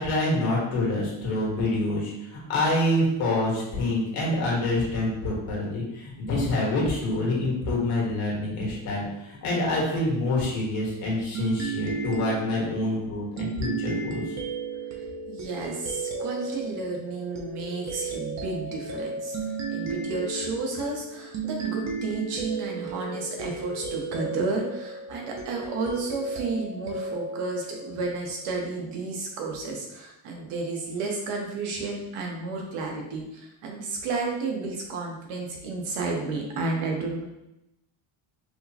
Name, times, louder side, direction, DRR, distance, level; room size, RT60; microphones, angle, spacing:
voice 1, 0.0-14.2, left 1 dB, 85° left, -4 dB, 1.5 m, -26 dB
sound 1, 11.3-28.5, right 4 dB, 35° right, 0.4 m, -34 dB
voice 2, 14.9-19.4 19.7-37.2, right 3 dB, 85° right, 0 dB, 1.0 m, -32 dB
4.7 x 2.0 x 2.8 m, 0.88 s
cardioid pair, 170°, 49 cm